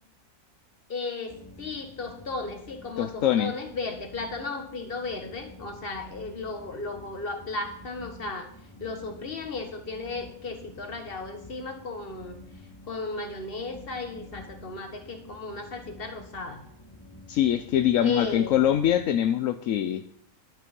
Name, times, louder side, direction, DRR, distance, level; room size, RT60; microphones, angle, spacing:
voice 1, 0.9-8.5 8.8-12.4 12.9-16.6 18.0-18.5, left 3 dB, 45° left, 5 dB, 1.8 m, -35 dB
sound 1, 1.3-19.2, left 1 dB, 20° left, 1.1 m, -49 dB
voice 2, 3.0-3.5 17.3-20.0, left 10 dB, 75° left, 9 dB, 1.0 m, -23 dB
11.0 x 9.1 x 5.3 m, 0.69 s
omnidirectional pair, 1.4 m